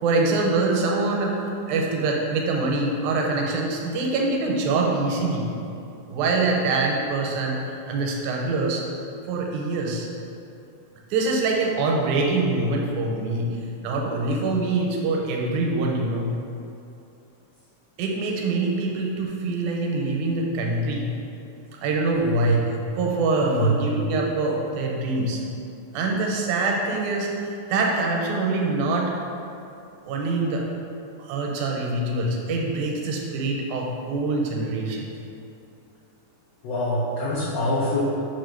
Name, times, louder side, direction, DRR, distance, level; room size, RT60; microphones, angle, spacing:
voice 1, 0.0-1.4 1.7-5.5 6.1-8.8 9.3-10.1 11.1-13.5 13.8-16.3 18.0-21.1 21.8-22.6 23.0-25.4 25.9-29.1 30.1-30.7 31.2-35.1, right 3 dB, 85° right, 0 dB, 1.9 m, -24 dB
voice 2, 23.4-23.7 36.6-38.0, equal, 75° left, -8 dB, 1.6 m, -24 dB
4.6 x 2.5 x 4.3 m, 2.7 s
omnidirectional pair, 3.4 m